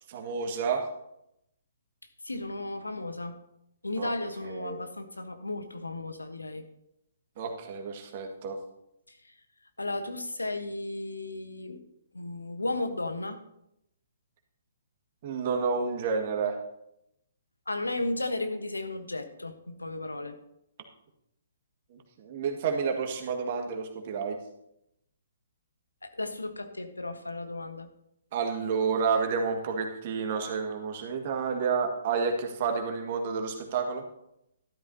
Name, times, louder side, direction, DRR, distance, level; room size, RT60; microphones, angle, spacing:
voice 1, 0.1-0.9 4.0-4.1 4.5-4.8 7.4-8.6 15.2-16.6 21.9-24.4 28.3-34.0, right 5 dB, 40° right, 3 dB, 2.0 m, -30 dB
voice 2, 2.2-3.4 3.8-6.6 9.1-9.3 9.8-11.8 12.1-13.4 17.7-20.4 26.0-27.9, left 2 dB, 85° left, 8 dB, 1.3 m, -34 dB
13.0 x 12.0 x 2.9 m, 0.80 s
figure-of-eight pair, 130°, 0 cm